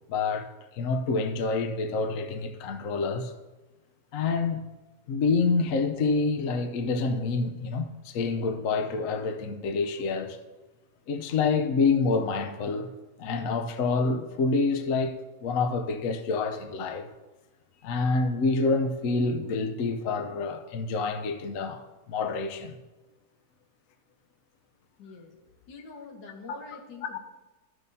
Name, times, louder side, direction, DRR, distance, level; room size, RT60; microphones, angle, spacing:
voice 1, 0.1-0.5 0.8-3.3 4.1-4.6 5.1-10.4 11.1-12.9 13.2-15.1 15.4-17.1 17.8-22.8 27.1-27.2, left 4 dB, 60° left, 0.9 m, -27 dB
voice 2, 25.0-25.3 25.7-27.2, left 4 dB, 85° left, 2.0 m, -45 dB
13.5 x 6.3 x 2.7 m
omnidirectional pair, 1.9 m